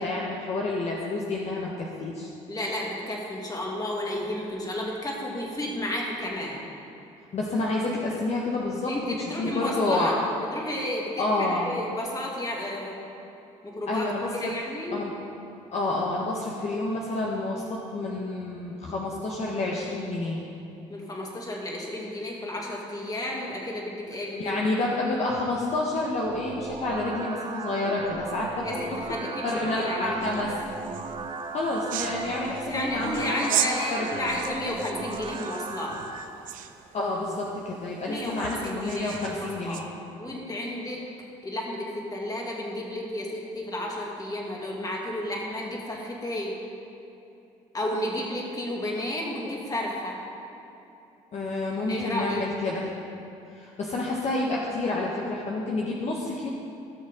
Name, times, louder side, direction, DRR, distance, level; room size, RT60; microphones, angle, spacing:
voice 1, 0.0-2.3 7.3-10.2 11.2-11.8 13.9-14.5 14.9-15.1 15.7-20.4 24.4-28.7 29.4-30.5 31.5-33.3 33.9-34.4 36.9-39.8 51.3-52.9 53.5-56.5, left 2 dB, 50° left, -3 dB, 1.3 m, -29 dB
voice 2, 2.5-6.6 8.9-10.1 10.5-13.0 13.6-14.1 14.4-15.0 20.9-24.6 28.6-28.8 29.1-30.3 32.7-36.0 38.1-39.9 40.2-41.1 41.4-46.6 47.7-50.2 51.9-52.5, left 1 dB, 25° left, -2 dB, 2.7 m, -32 dB
sound 1, 26.2-36.2, right 4 dB, 40° right, 1.0 m, -37 dB
sound 2, 30.2-39.9, right 11 dB, 70° right, 0.6 m, -37 dB
16.5 x 6.5 x 3.8 m, 2.9 s
supercardioid pair, 70°, 14 cm